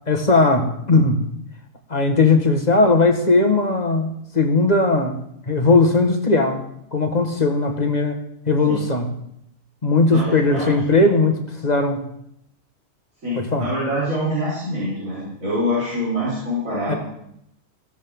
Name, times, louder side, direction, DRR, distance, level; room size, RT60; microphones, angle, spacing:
voice 1, 0.1-1.2 1.9-5.2 5.5-6.6 6.9-8.2 8.5-9.1 9.8-12.0 13.4-13.7 16.9-17.0, left 3 dB, 30° left, 4 dB, 1.6 m, -18 dB
voice 2, 10.1-11.0 13.2-17.0, equal, 85° right, -9 dB, 5.2 m, -25 dB
16.0 x 13.0 x 3.8 m, 0.76 s
omnidirectional pair, 1.4 m